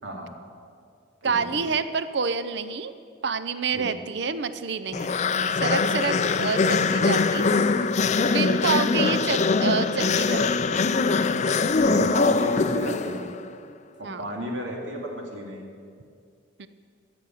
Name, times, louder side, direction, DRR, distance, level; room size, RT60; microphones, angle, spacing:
voice 1, 0.0-0.3 1.2-1.7 3.7-3.9 11.8-13.2 14.0-15.7, equal, 80° right, 0 dB, 2.5 m, -33 dB
voice 2, 1.2-2.9 3.2-5.1 5.5-7.5 8.2-10.6 14.0-14.2 16.6-16.7, right 5 dB, 60° right, 12 dB, 0.6 m, -28 dB
sound 1, 4.9-13.4, left 4 dB, 35° left, 0.4 m, -23 dB
14.5 x 6.9 x 9.3 m, 2.3 s
head